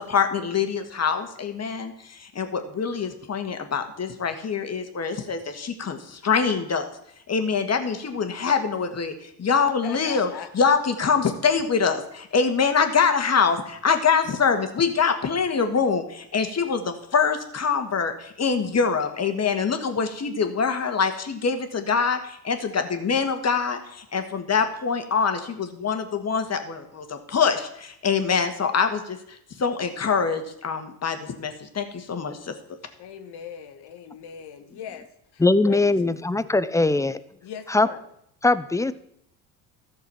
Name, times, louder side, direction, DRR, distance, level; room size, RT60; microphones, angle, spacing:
voice 1, 0.0-6.9 7.3-10.3 10.5-32.5, left 5 dB, 35° left, 7 dB, 1.7 m, -24 dB
voice 2, 9.8-10.7 33.0-36.1 36.4-36.5 37.4-38.0, left 8 dB, 55° left, 9 dB, 1.4 m, -40 dB
voice 3, 35.4-37.2 37.7-37.9 38.4-38.9, left 2 dB, 5° left, 15 dB, 0.5 m, -20 dB
13.5 x 6.6 x 5.7 m, 0.75 s
hypercardioid pair, 65°, 47 cm